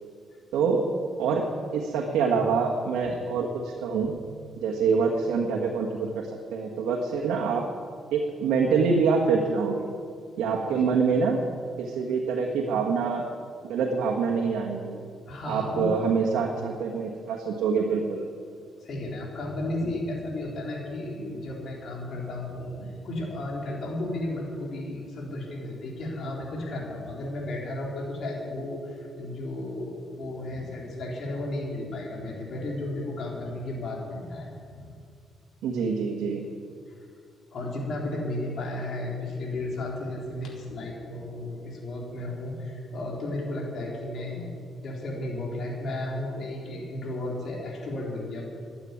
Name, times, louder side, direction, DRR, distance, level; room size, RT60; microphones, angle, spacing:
voice 1, 0.5-0.9 1.2-1.5 1.7-4.1 4.6-7.7 8.1-9.9 10.4-11.4 11.8-13.3 13.6-15.0 15.4-18.2 35.6-36.5, right 5 dB, 85° right, 0 dB, 1.6 m, -25 dB
voice 2, 15.3-15.9 18.8-34.5 34.7-34.9 36.9-37.0 37.5-48.4, left 1 dB, 60° left, -2 dB, 3.9 m, -34 dB
12.5 x 8.9 x 9.9 m, 2.2 s
cardioid pair, 90°, 0 cm